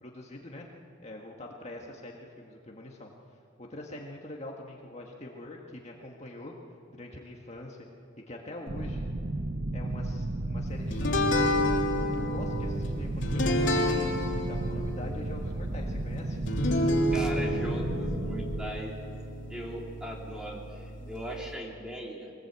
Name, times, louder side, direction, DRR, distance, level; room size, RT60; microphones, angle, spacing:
voice 1, 0.0-0.7 1.0-3.1 3.6-6.5 6.9-7.8 8.3-9.1 9.7-11.6 12.1-16.4, left 1 dB, 35° left, 0 dB, 1.7 m, -44 dB
sound 1, 8.7-18.7, right 1 dB, 45° right, 1.0 m, -33 dB
sound 2, 10.9-21.5, left 1 dB, 65° left, 3.0 m, -30 dB
voice 2, 17.1-18.9 19.5-22.3, equal, 5° right, -1 dB, 3.0 m, -39 dB
23.5 x 19.5 x 8.3 m, 2.5 s
head